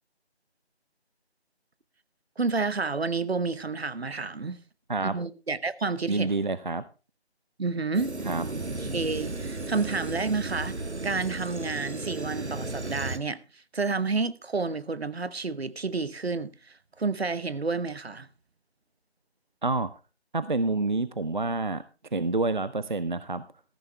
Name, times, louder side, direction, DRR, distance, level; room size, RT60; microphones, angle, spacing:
voice 1, 2.4-4.6 5.0-6.3 7.6-8.1 8.9-10.8 11.0-13.4 13.7-16.5 17.0-18.3, right 4 dB, 65° right, 1.0 m, -29 dB
voice 2, 6.1-6.9 8.2-8.5 19.6-19.9 20.3-21.8 22.1-23.4, right 3 dB, 45° right, 0.5 m, -28 dB
sound 1, 7.9-13.2, right 2 dB, 90° right, 1.5 m, -34 dB
14.0 x 11.5 x 3.3 m
figure-of-eight pair, 165°, 33 cm